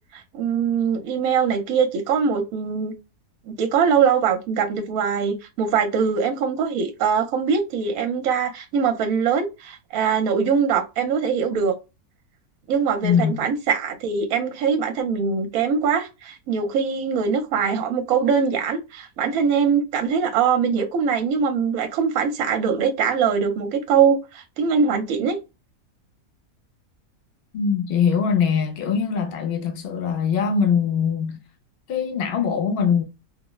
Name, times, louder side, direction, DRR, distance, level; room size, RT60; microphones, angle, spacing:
voice 1, 0.1-2.9 3.6-11.7 12.7-25.4, right 6 dB, 70° right, 1.0 m, -22 dB
voice 2, 13.0-13.5 27.5-31.4 31.9-33.0, left 6 dB, 60° left, 0.6 m, -22 dB
4.1 x 2.0 x 2.2 m
omnidirectional pair, 1.6 m